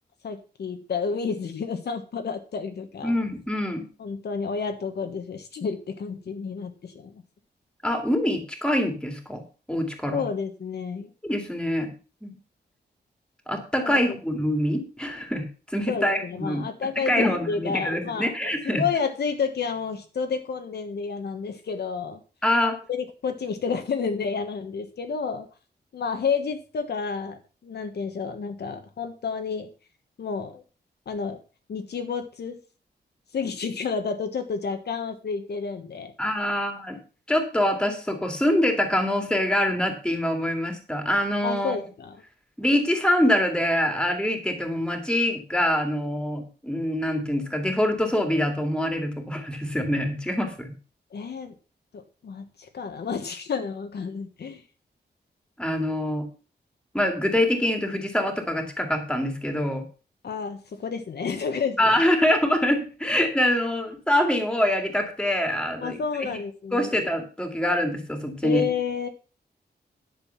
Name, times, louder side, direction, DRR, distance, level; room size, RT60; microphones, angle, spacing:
voice 1, 0.2-3.2 4.0-7.2 10.1-11.1 13.8-14.2 15.9-18.3 18.6-22.2 22.9-25.5 25.9-29.7 30.2-30.6 31.1-31.4 31.7-32.6 33.3-36.1 41.4-42.2 51.1-51.5 51.9-54.6 60.2-62.0 65.8-66.9 68.4-69.1, left 5 dB, 70° left, 6 dB, 1.4 m, -30 dB
voice 2, 3.0-3.9 7.8-9.4 9.7-10.2 11.2-11.9 12.2-12.4 13.5-16.7 17.1-18.8 22.4-22.8 36.2-37.0 37.3-41.8 42.6-50.7 55.6-56.3 56.9-59.8 61.8-66.0 66.7-68.6, left 1 dB, 5° left, 4 dB, 2.4 m, -25 dB
10.5 x 6.9 x 5.8 m, 0.35 s
wide cardioid pair, 145°, 18 cm